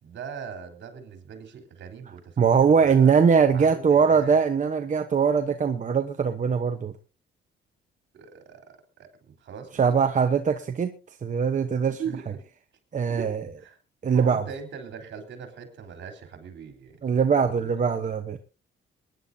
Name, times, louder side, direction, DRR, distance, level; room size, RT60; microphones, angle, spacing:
voice 1, 0.0-3.1 3.5-4.4 8.1-8.6 9.0-9.9 12.0-12.4 13.1-13.3 13.6-13.7 14.1-16.9 17.4-17.7, right 6 dB, 65° right, 3.9 m, -40 dB
voice 2, 2.4-6.9 9.8-10.9 11.2-12.0 12.9-13.4 14.0-14.4 17.0-18.4, right 6 dB, 40° right, 1.0 m, -21 dB
23.0 x 10.5 x 2.8 m
cardioid pair, 90°, 20 cm